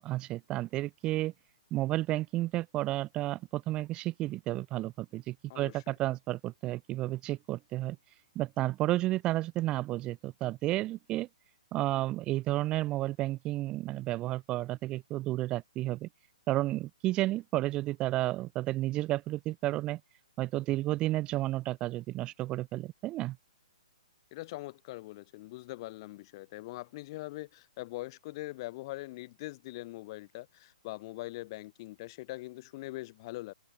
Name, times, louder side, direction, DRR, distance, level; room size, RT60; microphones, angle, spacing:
voice 1, 0.0-1.3 1.7-8.0 8.4-11.3 11.7-16.1 16.5-20.0 20.4-23.4, right 16 dB, 20° right, 0.5 m, -32 dB
voice 2, 5.5-5.8 24.3-33.5, left 19 dB, 40° left, 2.5 m, -42 dB
hypercardioid pair, 140°, 4 cm